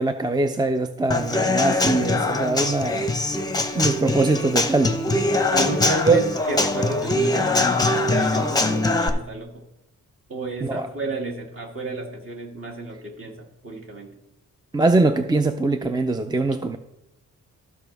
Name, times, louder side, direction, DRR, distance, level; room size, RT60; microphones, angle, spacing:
voice 1, 0.0-3.1 3.8-5.0 6.0-6.2 10.6-10.9 14.7-16.8, right 3 dB, 15° right, 8 dB, 0.4 m, -22 dB
Human voice / Acoustic guitar / Drum, 1.1-9.1, left 2 dB, 10° left, 0.8 m, -22 dB
voice 2, 5.5-9.5 10.3-13.3 13.6-14.1, right 1 dB, 40° right, -2 dB, 2.4 m, -31 dB
14.0 x 5.3 x 3.4 m, 0.85 s
cardioid pair, 100°, 34 cm